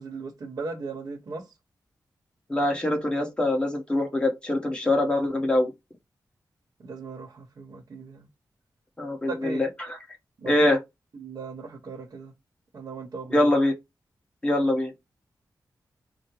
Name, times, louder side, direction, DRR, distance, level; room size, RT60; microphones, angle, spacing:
voice 1, 0.0-1.5 6.8-8.2 9.3-9.6 10.4-10.7 11.1-12.3 12.7-13.5, right 4 dB, 65° right, 1.1 m, -37 dB
voice 2, 2.5-5.7 9.0-10.0 10.5-10.8 13.3-13.7 14.4-14.9, left 1 dB, 15° left, 1.2 m, -24 dB
4.8 x 2.2 x 4.6 m
wide cardioid pair, 145°, 7 cm